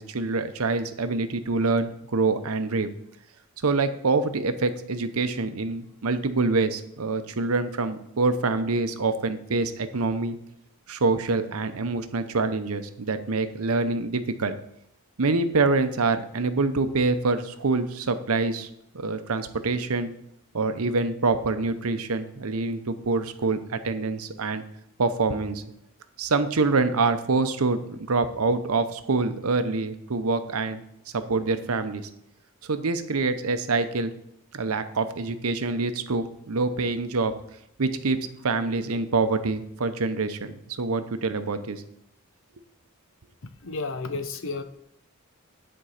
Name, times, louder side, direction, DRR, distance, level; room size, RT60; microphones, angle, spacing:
voice 1, 0.0-2.9 3.6-10.4 10.9-14.5 15.2-18.7 18.9-20.1 20.5-24.6 25.0-25.6 26.2-30.8 31.1-32.1 32.6-34.1 34.5-37.3 37.8-38.2 38.4-41.8, right 3 dB, 85° right, 10 dB, 0.8 m, -26 dB
voice 2, 43.6-44.6, left 3 dB, 60° left, 10 dB, 0.8 m, -31 dB
10.0 x 4.5 x 6.5 m, 0.77 s
head